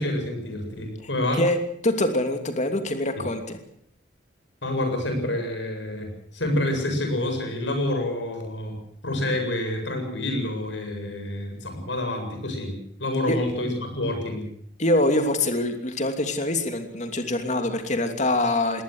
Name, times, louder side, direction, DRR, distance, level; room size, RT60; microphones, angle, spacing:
voice 1, 0.0-1.4 3.2-3.3 4.6-8.7 9.0-14.5, left 1 dB, 75° left, 5 dB, 7.7 m, -28 dB
voice 2, 1.8-3.6 13.3-13.4 14.8-18.8, left 1 dB, 40° left, 7 dB, 2.9 m, -24 dB
21.0 x 18.5 x 8.0 m, 0.66 s
head